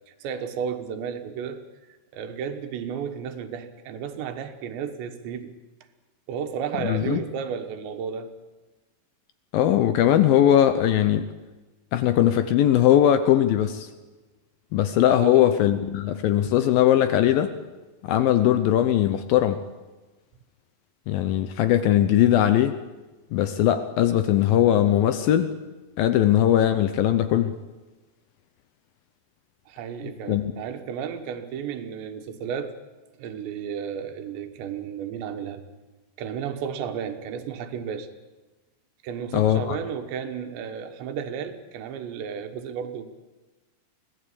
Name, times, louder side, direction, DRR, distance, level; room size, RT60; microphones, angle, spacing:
voice 1, 0.1-1.6 2.1-5.5 6.3-8.3 15.2-15.6 29.7-32.8 33.2-35.6 36.2-38.1 39.0-43.1, right 7 dB, 80° right, 7 dB, 3.6 m, -33 dB
voice 2, 6.8-7.2 9.5-11.3 11.9-13.9 14.7-17.5 18.0-19.6 21.1-22.8 23.3-25.5 26.0-27.5 30.3-30.4 39.3-39.8, left 11 dB, 75° left, 10 dB, 2.2 m, -20 dB
24.0 x 17.5 x 8.5 m, 1.2 s
omnidirectional pair, 5.0 m